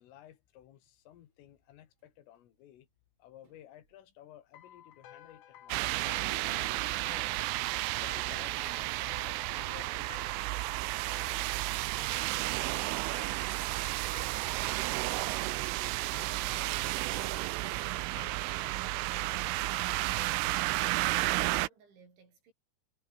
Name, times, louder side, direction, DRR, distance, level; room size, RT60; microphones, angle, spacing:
voice 1, 0.0-2.9 3.2-7.5 8.0-10.7, left 12 dB, 80° left, 4.7 m, -55 dB
Toilet flush, 0.9-1.0 1.4-1.7 2.0-2.5 3.1-3.2 3.4-4.2 4.7-4.8 5.3-5.4 5.8-17.8, right 5 dB, 30° right, 2.8 m, -58 dB
sound 1, 4.5-20.7, left 11 dB, 65° left, 3.9 m, -52 dB
sound 2, 5.7-21.7, right 21 dB, 90° right, 3.2 m, -32 dB
voice 2, 18.0-22.5, right 5 dB, 65° right, 9.3 m, -61 dB
omnidirectional pair, 5.8 m